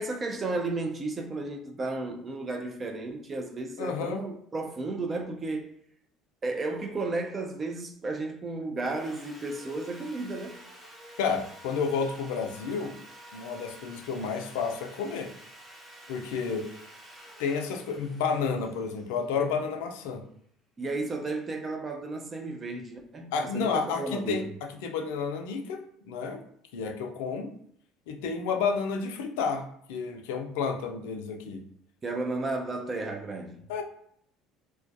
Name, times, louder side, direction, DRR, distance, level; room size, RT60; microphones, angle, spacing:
voice 1, 0.0-5.7 6.4-10.6 20.8-23.3 23.5-24.5 32.0-33.6, right 2 dB, 35° right, 0.4 m, -33 dB
voice 2, 3.8-4.2 11.2-13.0 13.3-15.3 16.1-16.7 17.4-20.2 23.3-26.4 26.7-27.5 28.1-29.6 29.9-31.6 33.7-33.8, left 5 dB, 75° left, 0.4 m, -31 dB
Sawing, 8.9-20.0, right 1 dB, 10° right, 0.8 m, -50 dB
2.2 x 2.2 x 2.5 m
hypercardioid pair, 70°, 0 cm